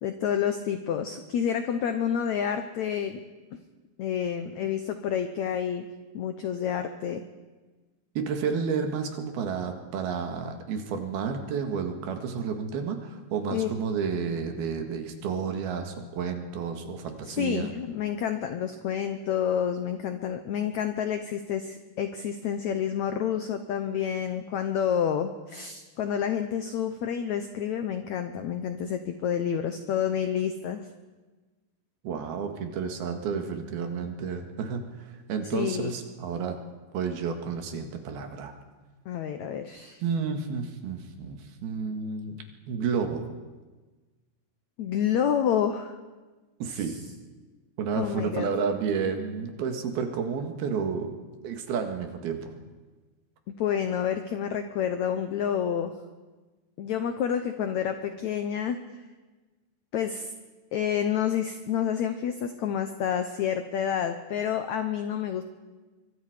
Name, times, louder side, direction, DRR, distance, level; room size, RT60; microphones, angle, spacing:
voice 1, 0.0-3.2 4.0-5.9 6.1-7.2 13.5-13.7 17.3-30.8 35.5-35.9 39.0-40.0 44.8-45.9 46.7-46.8 47.9-48.5 53.5-55.9 56.8-58.8 59.9-60.3 60.7-65.4, left 8 dB, 80° left, 8 dB, 1.6 m, -29 dB
voice 2, 8.2-17.7 32.0-36.6 36.9-38.5 40.0-43.3 46.6-47.0 47.8-51.1 51.4-52.5, right 6 dB, 75° right, 5 dB, 3.7 m, -31 dB
24.0 x 24.0 x 5.1 m, 1.3 s
omnidirectional pair, 4.6 m